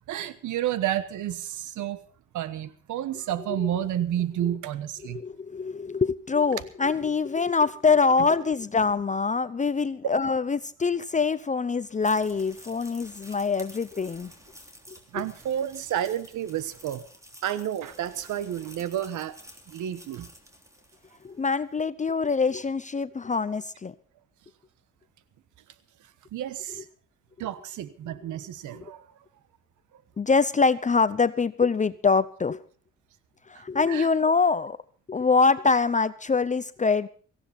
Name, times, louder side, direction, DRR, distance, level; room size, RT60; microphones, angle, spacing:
voice 1, 0.1-2.0 2.3-5.2 8.2-8.3 15.1-17.0 17.4-19.4 19.7-20.3 26.3-26.9 27.4-29.0 33.5-34.1, right 11 dB, 80° right, 15 dB, 1.2 m, -30 dB
voice 2, 5.1-14.3 15.1-15.2 21.2-23.9 28.8-28.9 30.2-32.6 33.5-34.8 35.1-37.1, left 4 dB, 25° left, 14 dB, 0.7 m, -24 dB
sound 1, 11.8-21.4, equal, 10° right, 3.2 m, -50 dB
17.5 x 15.5 x 4.3 m, 0.41 s
cardioid pair, 90°, 30 cm